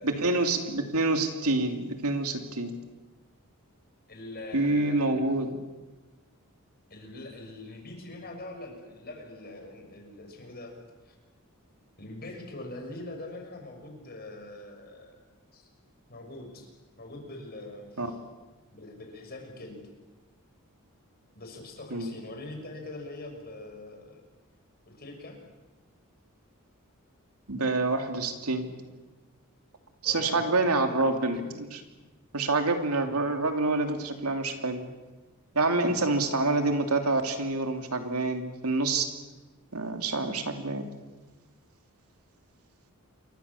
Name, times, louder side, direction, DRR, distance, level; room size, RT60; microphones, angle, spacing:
voice 1, 0.0-2.8 4.5-5.6 18.0-18.1 21.9-22.1 27.5-28.7 30.0-31.8 32.3-34.9 35.5-39.1 39.7-41.0, right 2 dB, 80° right, 6 dB, 2.8 m, -27 dB
voice 2, 4.1-5.2 6.9-10.7 11.0-11.1 12.0-15.2 15.5-15.7 16.1-16.7 17.0-18.2 18.7-19.8 21.4-24.2 24.9-25.4 30.0-31.3 33.0-33.2 35.9-36.1, left 2 dB, 45° left, 3 dB, 6.2 m, -43 dB
28.0 x 23.5 x 7.1 m, 1.2 s
head